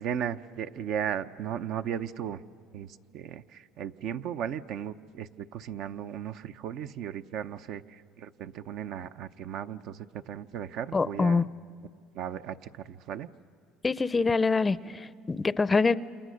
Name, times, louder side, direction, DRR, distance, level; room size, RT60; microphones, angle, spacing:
voice 1, 0.0-2.4 2.7-11.4 12.1-13.3, right 9 dB, 65° right, 10 dB, 0.7 m, -36 dB
voice 2, 10.9-11.5 13.8-15.9, left 4 dB, 20° left, 16 dB, 0.5 m, -25 dB
28.0 x 27.5 x 6.4 m, 2.4 s
cardioid pair, 110°, 0 cm